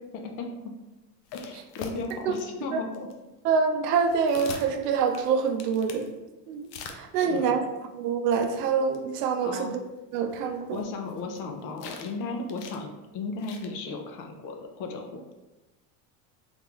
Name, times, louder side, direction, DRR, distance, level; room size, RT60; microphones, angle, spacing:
voice 1, 0.1-0.5 1.3-3.1 7.1-7.7 9.4-9.7 10.7-15.3, left 3 dB, 45° left, 3 dB, 0.5 m, -35 dB
sound 1, 1.3-2.4 2.9-3.1 4.0-6.1 6.6-7.4 8.7-8.8 8.9-9.0 9.2-9.3 10.2-11.4 11.8-12.2 12.5-12.8 13.4-13.7, left 5 dB, 85° left, 0.6 m, -41 dB
voice 2, 3.4-6.1 6.5-6.7 7.0-7.6 7.9-9.8 10.1-10.8, right 6 dB, 85° right, 5 dB, 0.6 m, -25 dB
3.6 x 2.3 x 3.0 m, 1.1 s
supercardioid pair, 110°, 46 cm